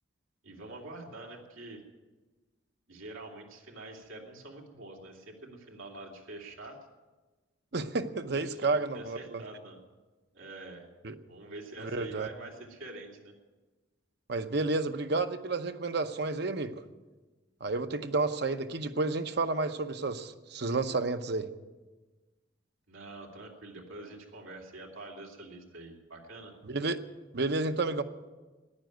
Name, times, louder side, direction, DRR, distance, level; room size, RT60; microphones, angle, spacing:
voice 1, 0.4-1.8 2.9-6.8 8.4-9.8 10.3-10.9 11.3-13.3 22.9-26.5, right 2 dB, 90° right, -1 dB, 2.6 m, -46 dB
voice 2, 7.7-9.4 11.0-11.1 11.9-12.3 14.3-16.8 17.6-21.5 26.6-27.0 27.3-28.0, right 3 dB, 55° right, 10 dB, 0.8 m, -31 dB
14.0 x 10.5 x 9.2 m, 1.2 s
head